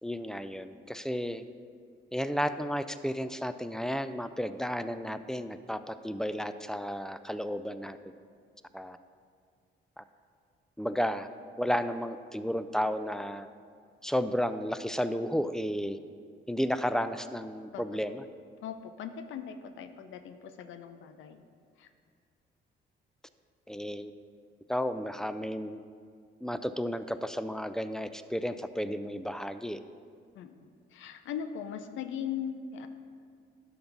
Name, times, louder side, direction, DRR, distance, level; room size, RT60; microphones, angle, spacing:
voice 1, 0.0-1.4 2.1-8.0 8.7-9.0 10.0-10.1 10.8-11.3 11.6-13.5 14.0-16.0 16.5-18.2 23.7-24.1 24.7-25.8 26.4-29.8, equal, 5° left, 11 dB, 0.3 m, -32 dB
voice 2, 18.6-21.4 21.8-21.9 30.4-32.9, left 8 dB, 80° left, 8 dB, 0.6 m, -39 dB
11.5 x 4.0 x 5.9 m, 2.1 s
cardioid pair, 90°, 20 cm